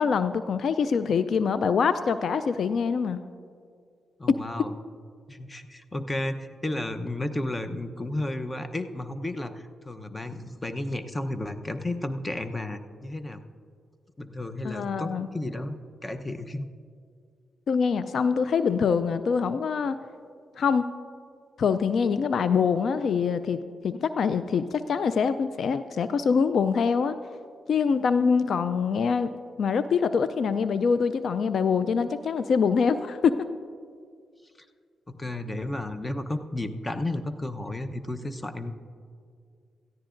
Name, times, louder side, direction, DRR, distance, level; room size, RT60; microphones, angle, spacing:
voice 1, 0.0-3.2 4.3-4.4 14.6-15.3 17.7-20.0 20.6-20.9 21.6-27.2 27.7-29.3 29.6-33.5, left 6 dB, 70° left, 12 dB, 0.3 m, -24 dB
voice 2, 4.2-4.7 5.3-13.4 14.2-16.7 35.1-38.7, left 1 dB, 25° left, 9 dB, 0.8 m, -33 dB
17.0 x 14.0 x 2.5 m, 2.2 s
supercardioid pair, 55°, 0 cm